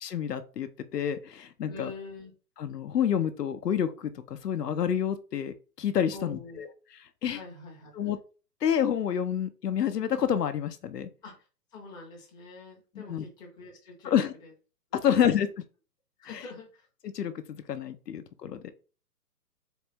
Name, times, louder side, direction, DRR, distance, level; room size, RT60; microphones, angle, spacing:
voice 1, 0.0-1.9 2.6-7.4 7.9-8.2 8.6-11.1 12.9-13.2 14.0-14.3 14.9-15.6 16.3-16.5 17.0-17.3 17.7-18.7, left 9 dB, 75° left, 10 dB, 0.8 m, -29 dB
voice 2, 1.7-2.3 6.1-6.6 7.3-7.9 11.2-11.3 11.7-14.5 15.0-15.5 16.2-16.9, left 3 dB, 10° left, -3 dB, 0.8 m, -45 dB
4.0 x 3.0 x 3.4 m, 0.34 s
hypercardioid pair, 145°, 49 cm